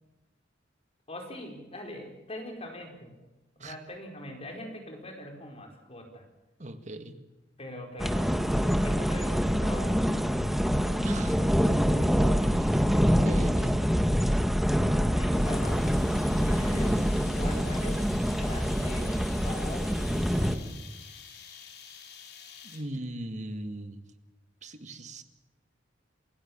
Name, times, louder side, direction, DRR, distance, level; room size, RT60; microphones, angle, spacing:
voice 1, 1.1-3.1 3.6-6.2 7.6-10.0 15.0-17.0 17.3-18.0 18.4-20.7, left 1 dB, 35° left, 3 dB, 4.8 m, -42 dB
voice 2, 6.6-7.2 11.0-11.4 12.4-13.8 22.6-24.0 24.6-25.2, right 1 dB, 40° right, 9 dB, 1.8 m, -40 dB
sound 1, 8.0-20.6, equal, ahead, 1.4 m, -25 dB
sound 2, 15.3-23.0, left 7 dB, 60° left, 3.8 m, -49 dB
28.5 x 16.5 x 7.3 m, 1.0 s
head